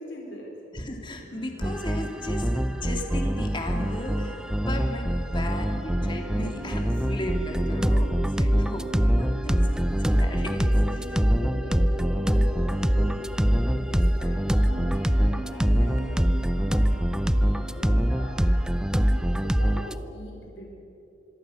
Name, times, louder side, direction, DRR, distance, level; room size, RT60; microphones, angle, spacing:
voice 1, 0.0-0.6 9.5-9.8 11.2-20.7, equal, 65° left, 0 dB, 4.8 m, -43 dB
voice 2, 0.7-11.2, left 1 dB, 25° left, 2 dB, 2.7 m, -36 dB
sound 1, 1.2-19.8, equal, 30° right, 7.7 m, -39 dB
sound 2, 1.6-19.9, equal, 5° right, 0.5 m, -24 dB
sound 3, 6.6-6.9 7.6-7.9 8.6-8.8 9.6-9.9 10.6-10.9 11.5-11.8 12.4-12.6 13.3-13.6 14.2-14.6 15.2-15.4 16.0-16.3 16.9-17.1 17.8-18.1 18.7-19.0, equal, 45° left, 4.0 m, -51 dB
26.5 x 22.5 x 7.1 m, 2.9 s
head